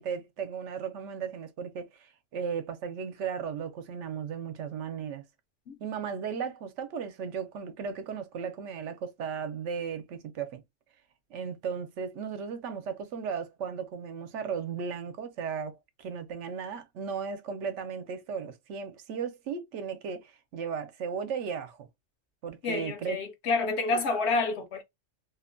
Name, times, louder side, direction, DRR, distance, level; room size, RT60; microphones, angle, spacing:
voice 1, 0.0-5.2 5.8-10.6 11.3-15.7 16.0-21.9 22.4-23.2 23.9-24.0, right 6 dB, 75° right, 0.9 m, -36 dB
voice 2, 22.6-24.8, left 3 dB, 65° left, 0.9 m, -28 dB
2.7 x 2.1 x 2.4 m
omnidirectional pair, 1.3 m